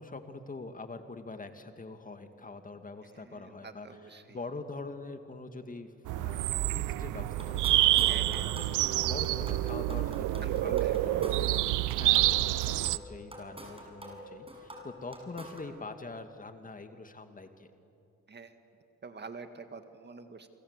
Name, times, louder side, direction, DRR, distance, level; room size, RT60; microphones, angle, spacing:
voice 1, 0.0-11.6 12.0-17.7, left 3 dB, 25° left, 7 dB, 2.0 m, -44 dB
voice 2, 3.1-4.4 8.1-8.5 10.4-11.4 18.3-18.5 19.0-20.5, right 4 dB, 35° right, 8 dB, 2.0 m, -45 dB
sound 1, 6.1-13.0, right 16 dB, 85° right, 0.6 m, -28 dB
sound 2, 7.2-15.7, equal, 20° right, 6.6 m, -47 dB
29.0 x 24.5 x 8.2 m, 2.7 s
cardioid pair, 90°, 30 cm